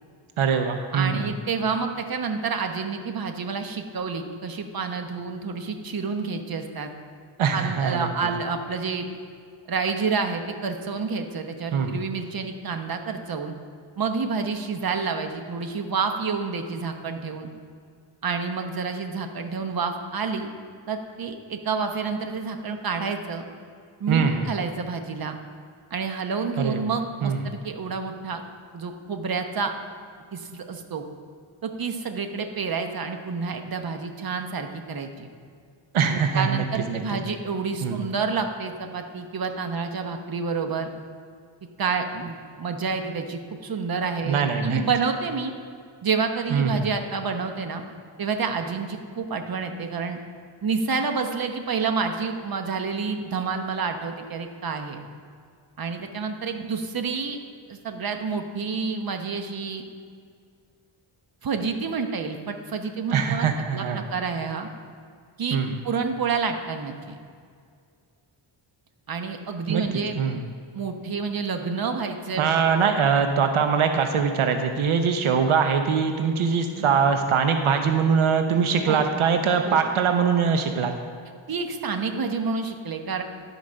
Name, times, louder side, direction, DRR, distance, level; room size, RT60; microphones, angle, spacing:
voice 1, 0.4-1.3 7.4-8.1 11.7-11.9 24.1-24.5 26.6-26.8 27.2-27.4 35.9-37.0 37.8-38.0 44.3-44.8 46.5-46.8 63.1-64.0 65.5-65.7 69.7-69.8 70.2-70.4 72.4-80.9, right 6 dB, 80° right, 6 dB, 0.8 m, -22 dB
voice 2, 0.9-6.9 7.5-9.1 9.7-13.5 14.0-17.5 18.2-20.5 20.9-23.5 24.0-25.3 25.9-28.4 28.7-29.7 30.3-31.1 31.6-35.3 36.1-40.9 41.8-45.5 46.0-47.8 48.2-50.2 50.6-55.0 55.8-57.4 57.7-59.8 61.4-63.5 63.7-64.7 65.4-67.2 69.1-70.2 70.7-72.6 76.7-77.0 78.9-79.0 79.6-79.8 81.5-83.2, right 5 dB, 45° right, 6 dB, 1.0 m, -29 dB
12.0 x 5.1 x 6.3 m, 2.2 s
wide cardioid pair, 100°, 48 cm